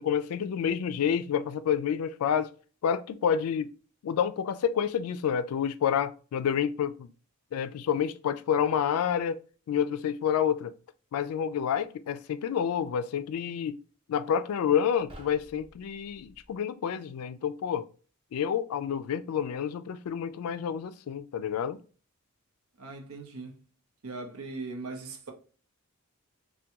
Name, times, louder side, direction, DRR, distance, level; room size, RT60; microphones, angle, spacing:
voice 1, 0.0-2.5 2.8-3.7 4.0-7.1 7.5-9.4 9.7-10.7 11.1-13.8 14.1-17.9 18.3-21.8, left 8 dB, 85° left, 0.3 m, -29 dB
sound 1, 15.1-16.6, right 1 dB, 25° right, 0.6 m, -52 dB
voice 2, 22.8-23.6 24.0-25.3, right 3 dB, 85° right, 0.7 m, -39 dB
3.4 x 2.2 x 2.9 m
head